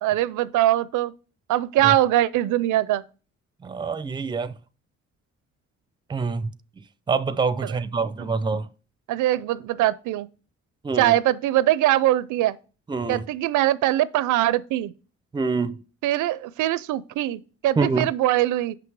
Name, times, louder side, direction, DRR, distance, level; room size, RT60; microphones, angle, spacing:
voice 1, 0.0-1.1 1.5-3.0 7.6-7.8 9.1-10.3 11.0-12.6 13.1-14.9 16.0-18.8, right 14 dB, 80° right, 0.5 m, -22 dB
voice 2, 3.6-4.5 6.1-6.5 6.8-8.7 10.8-11.2 12.9-13.2 15.3-15.8 17.8-18.1, right 4 dB, 15° right, 0.5 m, -26 dB
6.0 x 5.9 x 4.7 m
cardioid pair, 90°, 30 cm